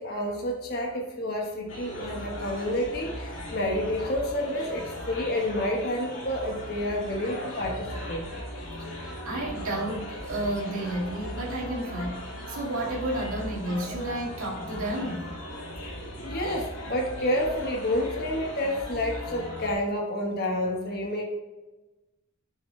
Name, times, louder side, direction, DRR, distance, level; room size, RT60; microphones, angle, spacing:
voice 1, 0.0-8.3 13.8-13.9 16.2-21.2, left 1 dB, 45° left, 0 dB, 1.3 m, -29 dB
sound 1, 1.7-19.7, equal, 60° left, 2.3 m, -38 dB
voice 2, 9.2-15.3, right 1 dB, 75° right, -3 dB, 2.1 m, -31 dB
8.1 x 6.6 x 3.3 m, 1.1 s
head